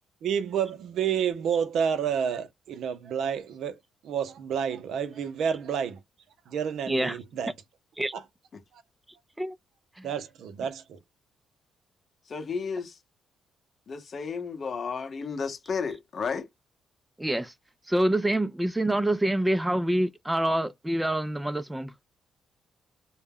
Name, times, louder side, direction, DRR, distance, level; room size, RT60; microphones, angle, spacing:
voice 1, 0.2-3.7 4.0-6.0 6.5-7.5 8.1-8.2 10.0-11.0, right 7 dB, 70° right, 0.5 m, -29 dB
voice 2, 6.9-7.2 8.0-8.1 9.4-9.6 10.0-10.1 17.2-17.5 17.9-21.9, right 1 dB, 10° right, 0.4 m, -26 dB
voice 3, 12.3-13.0 13.9-16.5, left 5 dB, 45° left, 0.8 m, -33 dB
2.2 x 2.1 x 3.5 m
cardioid pair, 90°, 0 cm